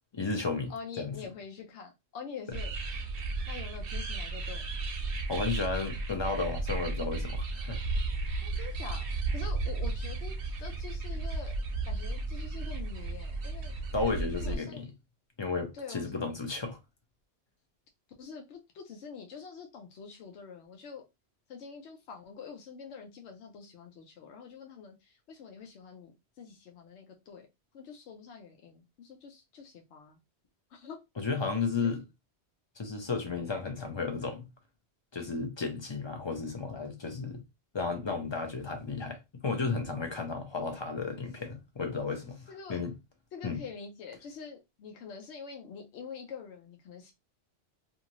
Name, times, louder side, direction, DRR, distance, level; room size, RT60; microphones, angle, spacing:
voice 1, 0.1-1.2 5.3-7.8 13.9-14.9 15.4-16.8 31.2-32.0 32.8-34.5 35.1-37.4 37.7-42.9 43.4-43.6, left 4 dB, 35° left, 0.4 m, -33 dB
voice 2, 0.7-2.7 3.5-4.7 8.4-9.0 9.3-11.6 11.9-13.7 14.4-14.9 15.7-16.2 18.2-21.0 21.5-27.5 27.7-30.2 30.7-31.0 31.8-31.9 42.5-42.8 43.3-47.1, left 6 dB, 80° left, 0.9 m, -45 dB
sound 1, 2.5-14.6, right 3 dB, 60° right, 0.8 m, -34 dB
2.6 x 2.5 x 2.9 m
omnidirectional pair, 1.2 m